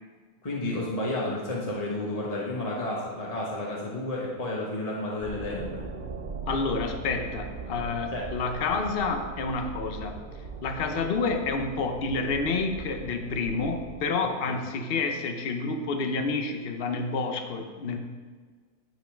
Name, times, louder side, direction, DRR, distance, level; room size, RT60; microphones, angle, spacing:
voice 1, 0.4-5.8 8.1-8.2 14.5-14.6, left 1 dB, 25° left, -4 dB, 1.3 m, -31 dB
sound 1, 5.2-14.1, right 4 dB, 45° right, 0.7 m, -40 dB
voice 2, 6.5-10.2 10.6-18.0, left 4 dB, 45° left, 5 dB, 0.9 m, -29 dB
9.4 x 5.4 x 5.1 m, 1.5 s
omnidirectional pair, 1.6 m